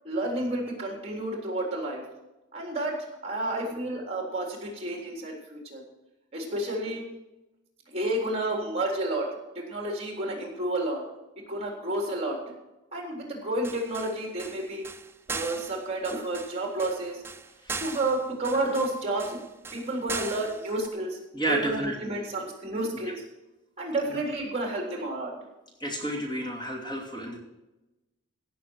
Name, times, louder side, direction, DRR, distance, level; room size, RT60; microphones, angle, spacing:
voice 1, 0.0-2.0 2.5-3.0 3.2-5.8 6.3-7.0 7.9-9.3 9.7-11.0 11.5-12.4 12.9-14.8 15.3-17.2 17.8-19.4 19.7-21.2 21.5-23.2 23.8-25.3, right 1 dB, 35° right, 0 dB, 3.6 m, -30 dB
sound 1, 13.6-20.9, right 4 dB, 15° right, 0.5 m, -39 dB
voice 2, 21.3-22.0 25.8-27.4, right 1 dB, 25° left, -1 dB, 2.7 m, -30 dB
16.5 x 7.1 x 6.3 m, 1.0 s
head